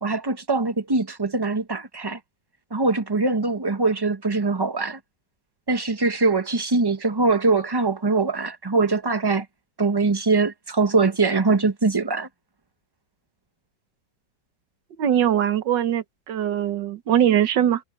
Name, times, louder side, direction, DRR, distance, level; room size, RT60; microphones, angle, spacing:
voice 1, 0.0-2.2 2.7-5.0 5.7-9.5 9.8-12.3, right 3 dB, 20° right, 0.7 m, -22 dB
voice 2, 15.0-17.8, right 10 dB, 85° right, 1.8 m, -21 dB
omnidirectional pair, 1.9 m